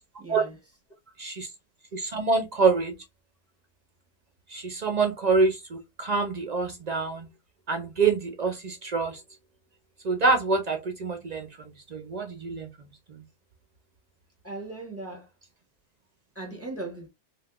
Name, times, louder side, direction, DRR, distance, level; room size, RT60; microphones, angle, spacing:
voice 1, 0.2-0.6 1.1-1.2 14.4-15.3 16.3-17.1, right 2 dB, 15° right, 1.0 m, -38 dB
voice 2, 1.9-2.9 4.5-7.3 7.7-9.2 10.0-12.7 13.1-13.2, right 4 dB, 50° right, 0.5 m, -26 dB
3.4 x 2.5 x 2.4 m
omnidirectional pair, 1.1 m